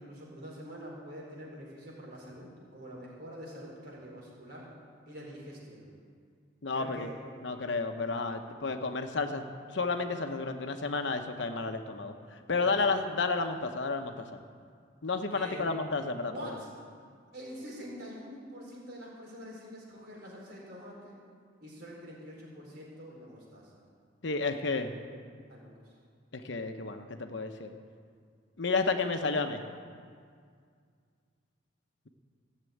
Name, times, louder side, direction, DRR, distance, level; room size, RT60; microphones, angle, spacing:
voice 1, 0.0-4.7 5.1-5.9 6.7-7.1 12.6-12.8 15.3-15.7 16.3-16.7 17.3-21.2 21.6-23.8 25.5-25.7, equal, 55° right, -3 dB, 4.5 m, -45 dB
voice 2, 6.6-7.1 7.4-9.4 9.7-14.3 15.0-16.6 24.2-24.9 26.3-27.7 28.6-29.6, left 4 dB, 65° left, 6 dB, 0.9 m, -31 dB
15.5 x 7.5 x 9.3 m, 2.1 s
head